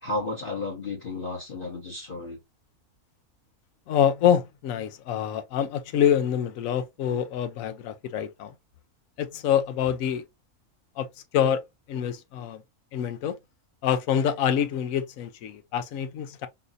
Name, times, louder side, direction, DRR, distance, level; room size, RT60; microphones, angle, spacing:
voice 1, 0.0-2.4, left 2 dB, 40° left, 1.2 m, -33 dB
voice 2, 3.9-8.5 9.2-10.2 11.0-11.1 11.3-11.6 11.9-12.6 12.9-13.4 13.8-16.5, left 9 dB, 70° left, 1.0 m, -26 dB
4.0 x 2.6 x 2.5 m
omnidirectional pair, 1.6 m